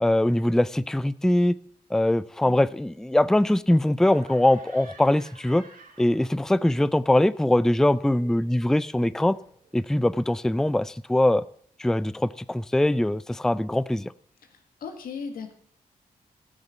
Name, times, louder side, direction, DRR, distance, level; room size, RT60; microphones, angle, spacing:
voice 1, 0.0-1.5 1.9-5.6 6.0-9.4 9.7-11.4 11.8-14.1, left 1 dB, 5° left, 17 dB, 0.4 m, -22 dB
Laughter, 4.0-6.7 7.0-9.9, right 3 dB, 75° right, 4.0 m, -52 dB
voice 2, 14.8-15.5, left 5 dB, 85° left, 6 dB, 1.8 m, -36 dB
13.0 x 6.8 x 8.0 m, 0.63 s
cardioid pair, 55°, 15 cm